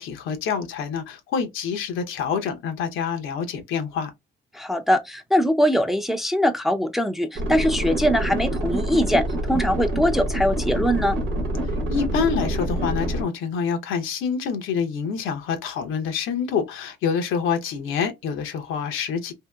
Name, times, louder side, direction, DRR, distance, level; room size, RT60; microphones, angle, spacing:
voice 1, 0.0-4.1 11.9-19.3, left 6 dB, 85° left, 0.7 m, -26 dB
voice 2, 4.5-9.2 9.5-11.2, equal, ahead, 0.5 m, -22 dB
sound 1, 7.3-13.2, right 1 dB, 90° right, 1.0 m, -26 dB
2.7 x 2.7 x 2.2 m
cardioid pair, 90°, 20 cm